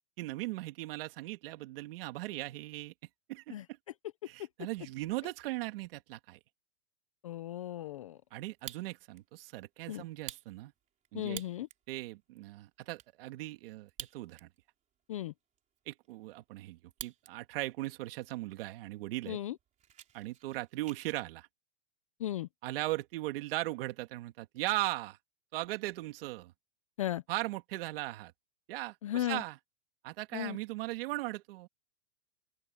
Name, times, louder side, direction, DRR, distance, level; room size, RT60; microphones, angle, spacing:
voice 1, 0.2-2.9 3.3-3.5 4.3-6.4 8.3-10.7 11.1-11.4 11.9-14.5 15.9-19.4 20.1-21.5 22.6-25.2 25.5-26.5 27.3-28.3 28.7-29.6 30.0-31.7, right 18 dB, 50° right, 2.6 m, -38 dB
voice 2, 7.2-8.2 9.9-10.0 11.1-11.7 15.1-15.3 19.3-19.6 22.2-22.5 27.0-27.2 29.0-29.4 30.3-30.6, left 12 dB, 30° left, 0.4 m, -36 dB
Fire, 8.4-9.2 9.6-9.7 10.1-11.9 12.4-12.5 12.6-13.1 13.8-14.6 15.0-15.1 15.6-17.3 17.7-18.1 18.7-18.8 19.0-19.2 19.5-21.2, right 10 dB, 20° right, 3.6 m, -48 dB
open air
supercardioid pair, 165°, 37 cm